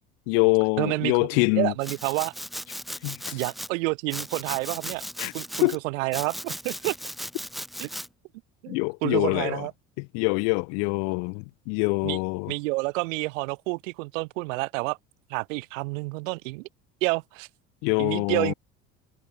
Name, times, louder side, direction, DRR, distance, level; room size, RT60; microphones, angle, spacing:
voice 1, 0.3-1.7 3.0-3.4 5.2-5.3 5.6-5.8 8.7-9.7 10.0-12.5 17.8-18.5, left 40 dB or more, 70° left, 0.6 m, -25 dB
voice 2, 0.8-1.3 1.6-2.3 3.3-5.0 5.3-7.0 7.8-7.9 8.6-9.7 12.0-12.2 12.5-15.0 15.3-16.7 17.0-17.5 18.0-18.5, right 25 dB, 80° right, 0.6 m, -29 dB
Domestic sounds home sounds, 1.8-3.7 4.1-5.8 6.1-8.1, equal, ahead, 0.8 m, -37 dB
hypercardioid pair, 75°, 39 cm